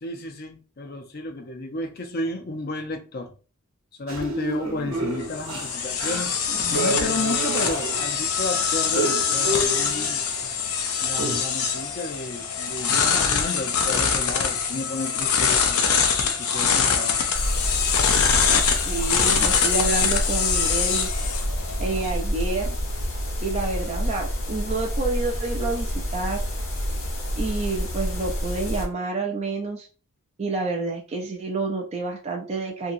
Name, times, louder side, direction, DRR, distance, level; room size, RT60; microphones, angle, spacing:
voice 1, 0.0-3.3 4.0-6.4 6.7-10.2 11.0-15.8 16.2-17.2, left 2 dB, 45° left, 0.5 m, -32 dB
sound 1, 4.1-8.2 8.5-10.4 10.9-11.4, right 2 dB, 65° right, 0.8 m, -30 dB
sound 2, 4.9-22.1, left 6 dB, 85° left, 0.6 m, -24 dB
sound 3, 17.3-28.8, equal, 65° left, 1.2 m, -28 dB
voice 2, 18.6-21.1 21.8-22.8 23.4-26.4 27.4-29.9 30.4-32.9, right 3 dB, 30° right, 0.4 m, -28 dB
2.9 x 2.7 x 2.6 m
head